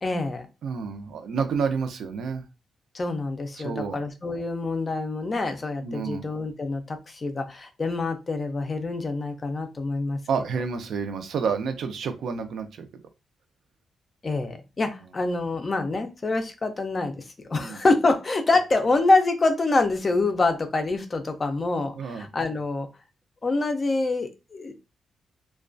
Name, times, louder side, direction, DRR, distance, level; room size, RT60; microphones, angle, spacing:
voice 1, 0.0-0.5 2.9-10.2 14.2-22.9 23.4-24.7, left 3 dB, 25° left, 7 dB, 0.4 m, -26 dB
voice 2, 0.6-2.4 3.6-4.0 5.8-6.2 10.3-12.9 17.5-17.8 22.0-22.2, right 5 dB, 70° right, 8 dB, 0.4 m, -29 dB
2.3 x 2.1 x 2.5 m, 0.27 s
wide cardioid pair, 155°, 0 cm